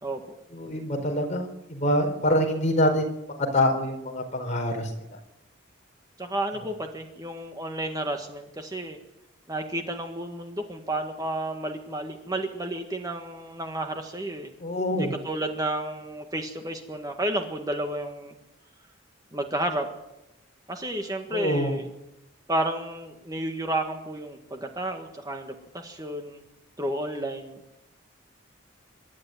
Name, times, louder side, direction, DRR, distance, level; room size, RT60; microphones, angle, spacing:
voice 1, 0.5-3.1 3.5-4.9 14.6-15.2 21.3-21.7, left 1 dB, 35° left, 2 dB, 4.8 m, -25 dB
voice 2, 6.2-9.0 9.5-14.5 14.9-18.3 19.3-19.9 20.7-21.9 22.5-26.4 26.8-27.6, right 1 dB, 20° right, 4 dB, 1.7 m, -31 dB
26.5 x 12.0 x 9.4 m, 0.91 s
head